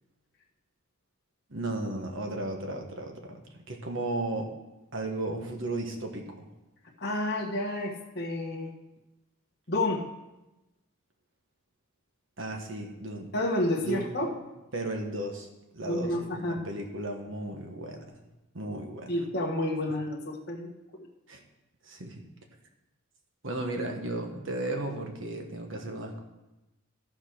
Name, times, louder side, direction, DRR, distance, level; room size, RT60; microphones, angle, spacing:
voice 1, 1.5-4.5 4.9-6.5 12.4-13.3 13.8-14.2 14.7-18.2 18.5-19.2 19.9-20.0 21.3-21.4 21.8-22.2 23.4-26.2, right 2 dB, 60° right, 3 dB, 1.4 m, -35 dB
voice 2, 7.0-8.7 9.7-10.0 13.3-14.3 15.8-16.6 19.1-21.1, left 1 dB, 50° left, -2 dB, 1.3 m, -30 dB
13.5 x 4.6 x 6.0 m, 1.0 s
head